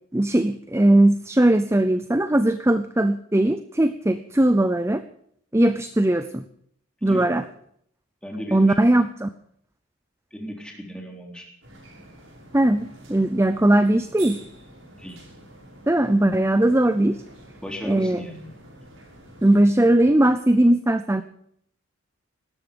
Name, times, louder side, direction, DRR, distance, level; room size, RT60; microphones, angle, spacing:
voice 1, 0.1-5.0 5.5-6.4 7.0-7.4 8.5-9.3 12.5-14.4 15.9-17.2 17.8-18.2 19.4-21.2, right 1 dB, 10° right, 11 dB, 0.6 m, -19 dB
voice 2, 8.2-8.8 10.3-11.5 14.9-15.2 17.6-18.6, equal, 5° left, 1 dB, 3.5 m, -35 dB
sound 1, 11.6-19.7, right 2 dB, 65° right, 5.9 m, -47 dB
18.0 x 13.5 x 5.2 m, 0.68 s
head